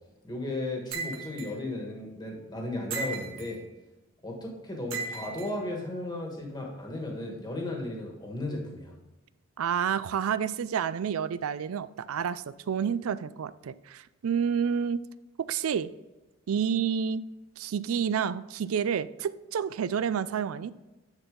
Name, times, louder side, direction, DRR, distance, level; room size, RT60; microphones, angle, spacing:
voice 1, 0.2-3.6 4.2-8.9, left 2 dB, 20° left, 0 dB, 1.4 m, -35 dB
sound 1, 0.9-1.5 2.9-3.6 4.9-5.5, right 4 dB, 65° right, 1.4 m, -36 dB
voice 2, 9.6-15.0 15.4-15.9 16.5-17.2 17.6-20.7, right 7 dB, 85° right, 16 dB, 0.4 m, -29 dB
9.6 x 4.3 x 3.8 m, 1.1 s
head